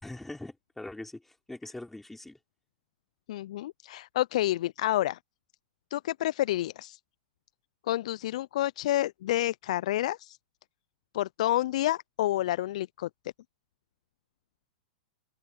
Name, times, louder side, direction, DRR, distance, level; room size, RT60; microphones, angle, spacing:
voice 1, 0.0-2.4, left 2 dB, 5° left, 4.6 m, -42 dB
voice 2, 3.3-5.2 5.9-7.0 7.9-10.4 11.1-13.1, left 14 dB, 60° left, 0.7 m, -29 dB
open air
figure-of-eight pair, 100°, 4 cm